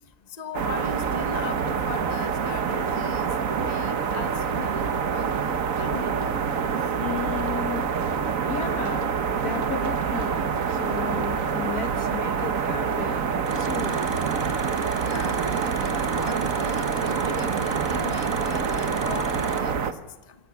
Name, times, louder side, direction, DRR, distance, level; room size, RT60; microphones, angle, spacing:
voice 1, 0.4-6.3 14.9-19.9 20.3-20.4, left 5 dB, 30° left, 10 dB, 1.3 m, -39 dB
sound 1, 0.5-19.9, right 6 dB, 65° right, 1.6 m, -26 dB
voice 2, 7.0-7.9 8.5-14.2, left 7 dB, 80° left, 8 dB, 2.3 m, -34 dB
sound 2, 13.5-19.6, right 1 dB, 15° right, 2.1 m, -37 dB
25.5 x 17.0 x 7.1 m, 1.1 s
omnidirectional pair, 1.6 m